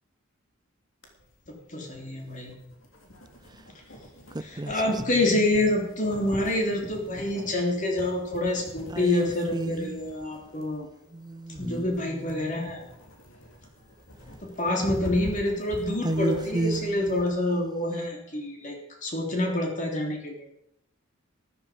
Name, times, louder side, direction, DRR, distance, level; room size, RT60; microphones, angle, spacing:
sound 1, 1.0-17.3, equal, 80° left, 3.2 m, -44 dB
voice 1, 1.5-2.5 4.4-10.9 11.6-12.8 14.4-18.7 19.0-20.5, left 1 dB, 40° left, 0 dB, 3.3 m, -27 dB
sound 2, 4.3-5.8 8.9-10.1 11.1-12.7 16.0-18.1, right 2 dB, 20° right, 0.5 m, -33 dB
13.5 x 12.5 x 5.1 m, 0.79 s
head